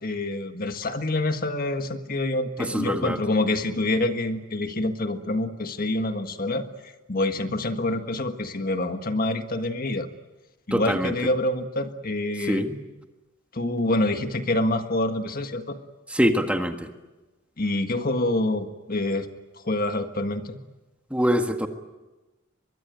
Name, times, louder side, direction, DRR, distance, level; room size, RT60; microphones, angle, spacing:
voice 1, 0.0-6.6 7.1-10.1 10.7-12.7 13.5-15.8 17.6-19.3 19.6-20.6, left 2 dB, 45° left, 7 dB, 1.6 m, -26 dB
voice 2, 2.6-3.2 10.7-11.1 12.5-12.8 16.1-16.9 21.1-21.7, equal, 5° right, 5 dB, 1.6 m, -24 dB
24.0 x 22.5 x 9.3 m, 1.1 s
head